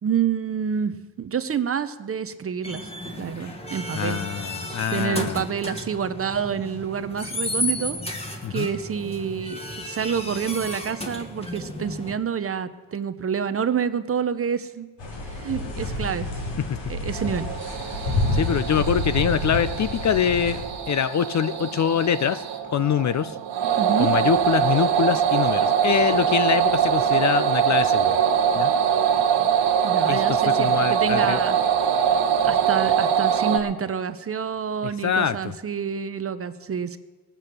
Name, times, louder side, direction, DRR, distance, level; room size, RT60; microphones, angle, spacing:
voice 1, 0.0-2.9 3.2-4.2 4.9-8.0 8.5-9.6 9.8-14.9 15.3-16.4 16.9-17.5 23.8-24.1 29.8-31.6 32.4-37.0, right 7 dB, 30° right, 12 dB, 0.6 m, -28 dB
sound 1, 2.6-12.1, left 1 dB, 15° left, 1.4 m, -33 dB
voice 2, 3.9-5.4 8.4-8.7 16.7-16.8 18.3-20.6 20.9-22.4 22.7-23.4 24.0-28.2 28.6-28.7 30.1-31.4 34.8-35.5, left 8 dB, 40° left, 14 dB, 0.4 m, -24 dB
sound 2, 15.0-20.7, left 1 dB, 65° left, 2.9 m, -28 dB
sound 3, 17.1-33.6, right 8 dB, 65° right, 1.6 m, -23 dB
19.0 x 7.6 x 6.6 m, 1.3 s
cardioid pair, 140°, 45 cm